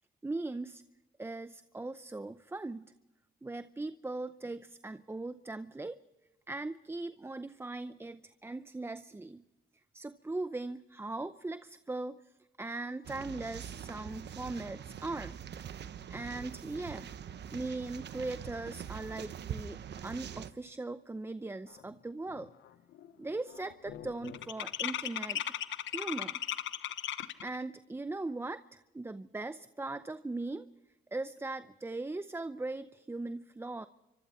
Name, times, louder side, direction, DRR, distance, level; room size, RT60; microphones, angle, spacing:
voice 1, 0.2-0.8 1.2-2.9 3.4-6.0 6.5-9.4 9.9-15.4 16.1-17.1 17.5-22.5 23.2-25.6 25.9-26.4 27.4-30.7 31.1-33.9, right 2 dB, 10° right, 13 dB, 0.6 m, -39 dB
sound 1, 13.0-20.5, right 8 dB, 60° right, 1.1 m, -44 dB
sound 2, 21.9-22.0 22.3-22.7 22.9-27.6, left 11 dB, 75° left, 1.1 m, -37 dB
28.0 x 24.5 x 4.3 m, 1.0 s
cardioid pair, 90°, 20 cm